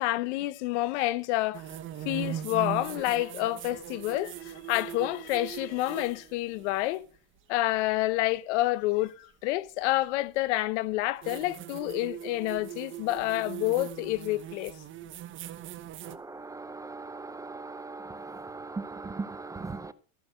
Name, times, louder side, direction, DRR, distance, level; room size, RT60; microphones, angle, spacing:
voice 1, 0.0-1.6 2.0-7.0 7.5-14.7, left 17 dB, 85° left, 1.0 m, -28 dB
sound 1, 1.5-7.0 9.1-9.2 11.2-16.2, right 11 dB, 35° right, 1.1 m, -40 dB
voice 2, 16.0-19.9, right 3 dB, 10° right, 0.5 m, -39 dB
15.0 x 6.1 x 6.5 m
cardioid pair, 150°, 34 cm